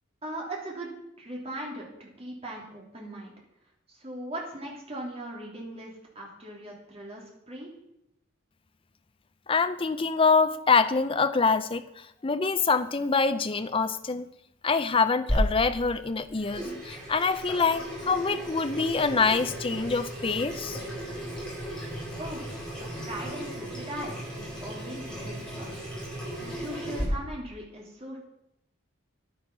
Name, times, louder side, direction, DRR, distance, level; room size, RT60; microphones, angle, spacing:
voice 1, 0.2-0.9 1.2-1.9 2.2-3.3 3.9-7.7 22.2-22.4 22.8-25.9 26.4-28.2, right 1 dB, 30° right, -3 dB, 3.1 m, -39 dB
voice 2, 9.5-14.3 14.6-20.8, left 4 dB, 25° left, 12 dB, 0.5 m, -25 dB
Water tap faucet / Sink (filling or washing), 15.3-27.0, equal, 5° left, 4.3 m, -35 dB
10.5 x 9.5 x 6.1 m, 0.83 s
head